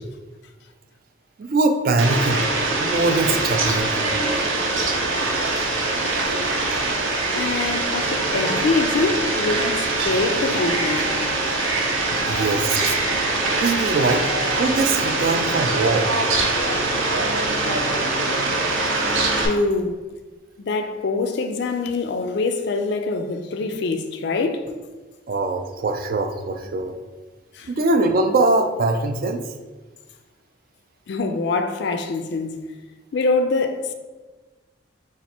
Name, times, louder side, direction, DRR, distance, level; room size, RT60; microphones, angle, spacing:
voice 1, 1.4-2.4 2.8-3.9 12.3-12.9 13.6-14.3 14.5-16.1 25.3-26.9 27.7-29.4, right 3 dB, 45° right, 0.3 m, -22 dB
Fowl, 2.0-19.5, right 2 dB, 80° right, 0.7 m, -23 dB
voice 2, 7.3-11.2 11.5-11.6 12.1-12.3 19.4-20.0 20.6-24.7 27.5-27.7 31.1-32.7 33.1-33.9, left 3 dB, 55° left, 0.3 m, -24 dB
4.1 x 2.4 x 4.2 m
head